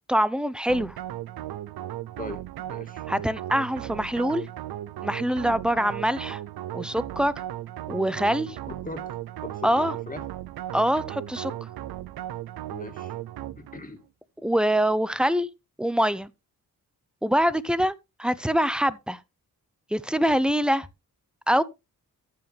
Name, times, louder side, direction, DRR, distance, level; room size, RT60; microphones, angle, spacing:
voice 1, 0.1-1.0 3.1-4.4 5.0-6.4 6.7-7.3 7.9-8.6 9.6-9.9 10.7-11.5 14.4-15.5 15.8-16.3 17.2-17.9 18.2-19.2 19.9-20.9 21.5-21.6, equal, ahead, 0.7 m, -24 dB
sound 1, 0.7-13.9, right 13 dB, 75° right, 0.6 m, -36 dB
voice 2, 2.7-3.0 8.7-9.2 9.4-10.2 12.7-13.1 13.6-14.0, left 2 dB, 20° left, 2.4 m, -39 dB
14.5 x 5.7 x 3.3 m
cardioid pair, 65°, 37 cm